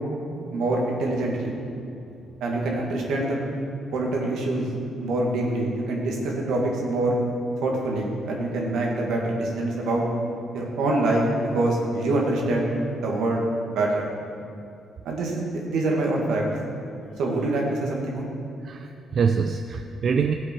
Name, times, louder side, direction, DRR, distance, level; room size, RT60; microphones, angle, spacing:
voice 1, 0.5-1.5 2.4-3.4 3.9-4.7 5.0-7.2 7.6-10.1 10.5-12.7 13.0-13.4 13.7-14.1 15.1-16.4 17.2-18.3, right 2 dB, 80° right, -1 dB, 2.1 m, -25 dB
voice 2, 18.6-20.3, right 6 dB, 55° right, 6 dB, 0.5 m, -25 dB
15.0 x 7.8 x 4.7 m, 2.6 s
cardioid pair, 90°, 0 cm